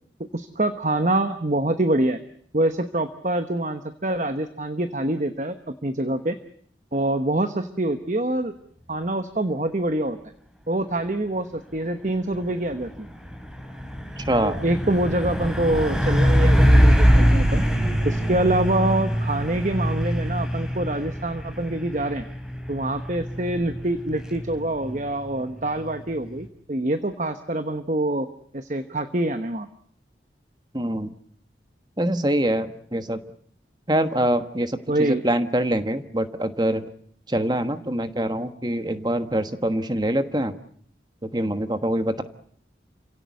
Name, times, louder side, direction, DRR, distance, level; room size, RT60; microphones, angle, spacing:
voice 1, 0.3-2.2 2.5-6.4 6.9-8.5 8.9-10.2 10.7-13.1 14.4-17.6 18.0-22.2 22.7-28.3 28.5-29.7 34.9-35.2, right 1 dB, 40° right, 9 dB, 1.1 m, -25 dB
Truck, 12.2-26.5, equal, 5° right, 2.9 m, -23 dB
voice 2, 14.2-14.6 30.7-31.1 32.0-33.2 33.9-36.9 37.3-40.6 41.2-42.2, right 1 dB, 25° right, 10 dB, 1.3 m, -24 dB
28.5 x 17.0 x 8.3 m, 0.62 s
head